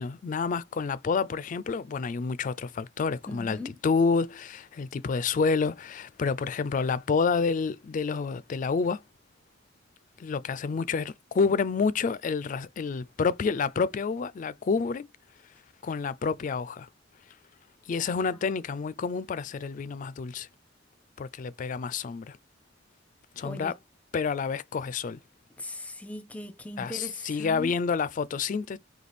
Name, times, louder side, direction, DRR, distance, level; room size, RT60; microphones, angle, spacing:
voice 1, 0.0-3.6 3.8-9.0 10.2-15.1 15.8-16.9 17.9-20.5 21.2-22.4 23.4-23.7 24.1-25.2 26.8-28.8, left 5 dB, 45° left, 0.3 m, -28 dB
voice 2, 3.3-3.7 18.1-18.5 23.4-23.7 25.6-27.7, left 1 dB, 10° left, 0.6 m, -40 dB
4.1 x 2.7 x 3.4 m
head